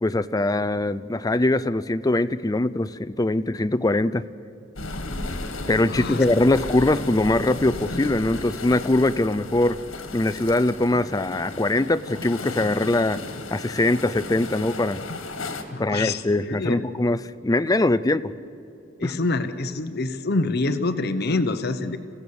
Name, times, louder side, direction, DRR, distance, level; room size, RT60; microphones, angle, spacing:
voice 1, 0.0-4.2 5.7-9.8 10.1-13.2 13.5-15.0 15.8-18.3 19.0-19.2, left 2 dB, 20° left, 14 dB, 0.5 m, -22 dB
sound 1, 4.7-15.6, left 2 dB, 85° left, 1.9 m, -35 dB
voice 2, 5.9-6.2 15.7-16.8 19.0-22.0, left 2 dB, 55° left, 9 dB, 0.9 m, -26 dB
28.0 x 16.0 x 7.1 m, 2.6 s
head